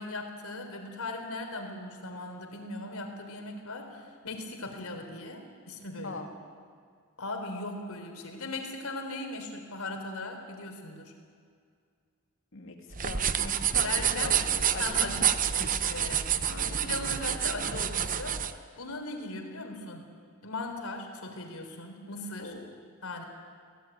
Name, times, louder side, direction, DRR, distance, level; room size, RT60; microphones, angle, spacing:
voice 1, 0.0-6.2 7.2-11.1 13.8-14.4 14.8-15.3 15.6-20.0 20.4-22.5 23.0-23.2, left 2 dB, 80° left, 4 dB, 3.9 m, -38 dB
sound 1, 12.9-18.5, right 9 dB, 40° right, 0.8 m, -28 dB
voice 2, 13.0-15.1 16.5-17.0 22.4-22.7, left 3 dB, 60° left, 3 dB, 2.6 m, -41 dB
23.5 x 17.0 x 9.4 m, 2.2 s
head